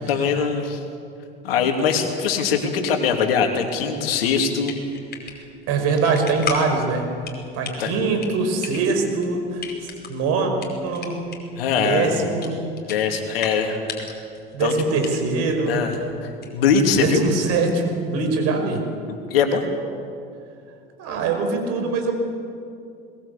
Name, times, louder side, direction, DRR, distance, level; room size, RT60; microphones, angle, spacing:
voice 1, 0.1-0.8 1.4-4.7 7.8-8.0 11.5-12.1 12.9-13.8 14.6-14.7 15.7-17.2 19.1-19.6, left 6 dB, 75° left, 4 dB, 3.0 m, -22 dB
sound 1, 4.5-17.3, left 5 dB, 35° left, 5.1 m, -37 dB
voice 2, 5.7-7.1 7.5-10.5 10.8-11.2 11.8-12.5 14.5-15.8 17.0-18.8 21.0-22.1, right 4 dB, 55° right, 5 dB, 5.3 m, -23 dB
21.5 x 21.0 x 8.4 m, 2.5 s
hypercardioid pair, 75°, 29 cm